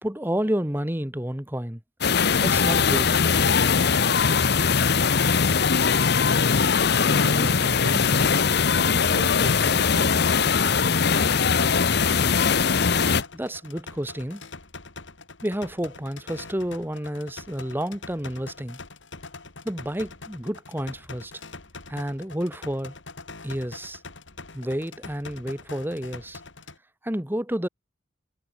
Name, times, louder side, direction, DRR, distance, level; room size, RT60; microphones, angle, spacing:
voice 1, 0.0-1.8 2.4-3.2 13.3-14.4 15.4-18.8 19.6-21.3 21.9-23.0 23.4-24.0 24.5-26.4 27.0-27.7, equal, 10° right, 2.1 m, -30 dB
sound 1, 2.0-13.2, left 5 dB, 60° left, 0.9 m, -21 dB
voice 2, 7.1-8.4 8.7-11.0, right 1 dB, 50° right, 2.1 m, -37 dB
sound 2, 12.8-26.8, left 3 dB, 80° left, 3.6 m, -43 dB
head